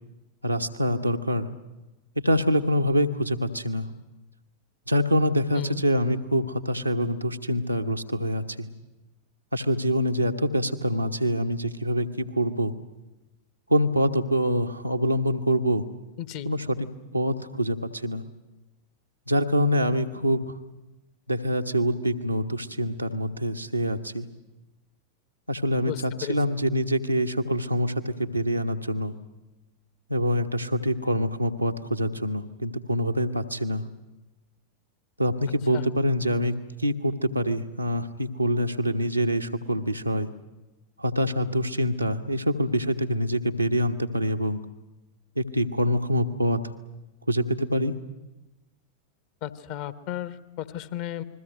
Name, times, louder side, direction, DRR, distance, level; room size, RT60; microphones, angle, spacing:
voice 1, 0.4-1.5 2.2-3.9 4.9-8.7 9.5-12.7 13.7-15.8 16.4-16.8 17.1-18.2 19.3-20.4 21.3-24.3 25.5-29.1 30.1-33.8 35.2-36.6 36.8-40.3 41.0-44.6 45.4-46.6 47.3-47.9, equal, 85° right, 4 dB, 1.3 m, -25 dB
voice 2, 16.2-16.5 25.8-26.4 35.7-35.9 49.4-51.2, left 12 dB, 45° left, 13 dB, 1.4 m, -34 dB
28.5 x 21.5 x 8.0 m, 1.0 s
figure-of-eight pair, 90°, 0 cm